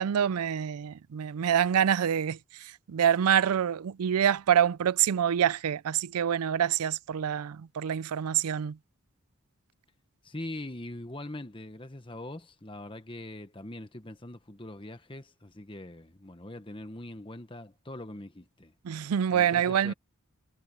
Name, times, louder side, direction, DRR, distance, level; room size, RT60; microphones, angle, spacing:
voice 1, 0.0-8.8 18.8-19.9, right 9 dB, 85° right, 0.4 m, -26 dB
voice 2, 10.2-18.7 19.3-19.9, left 1 dB, 25° left, 1.1 m, -42 dB
head